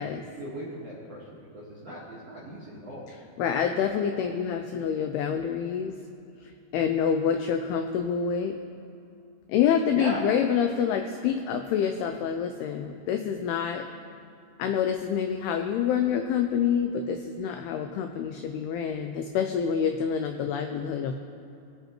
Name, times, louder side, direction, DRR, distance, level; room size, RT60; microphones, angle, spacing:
voice 1, 0.0-3.1 9.9-10.2, right 1 dB, 60° right, -7 dB, 1.6 m, -38 dB
voice 2, 3.1-5.9 6.4-8.5 9.5-13.9 14.6-21.1, left 7 dB, 90° left, 6 dB, 2.2 m, -27 dB
21.5 x 8.0 x 3.0 m, 2.7 s
omnidirectional pair, 5.1 m